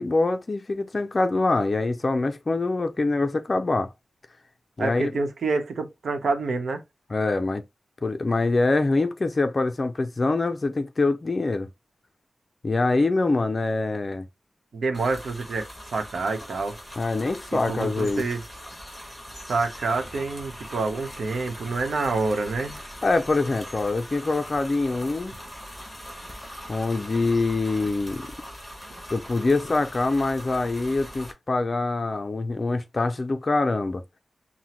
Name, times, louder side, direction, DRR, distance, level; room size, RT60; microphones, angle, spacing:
voice 1, 0.0-3.9 4.8-5.0 7.1-7.6 8.0-11.7 12.6-14.3 17.0-18.3 23.0-25.3 26.7-28.3 29.1-34.0, left 3 dB, 35° left, 0.5 m, -24 dB
voice 2, 4.8-6.8 14.7-16.8 17.5-18.4 19.5-22.8, right 3 dB, 85° right, 0.9 m, -27 dB
sound 1, 14.9-31.3, equal, 5° left, 1.5 m, -41 dB
5.8 x 2.2 x 3.0 m
wide cardioid pair, 155°, 0 cm